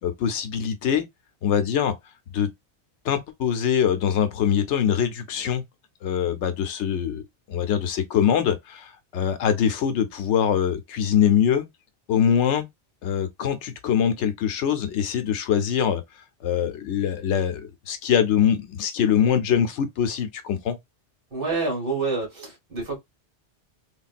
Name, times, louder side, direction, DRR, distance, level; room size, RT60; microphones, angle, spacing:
voice 1, 0.0-1.0 1.4-1.9 2.3-2.5 3.0-5.6 6.0-7.2 7.5-11.7 12.1-12.7 13.0-16.0 16.4-20.8, left 8 dB, 80° left, 0.9 m, -23 dB
voice 2, 21.3-23.0, right 3 dB, 50° right, 1.9 m, -27 dB
3.4 x 2.3 x 2.4 m
omnidirectional pair, 1.2 m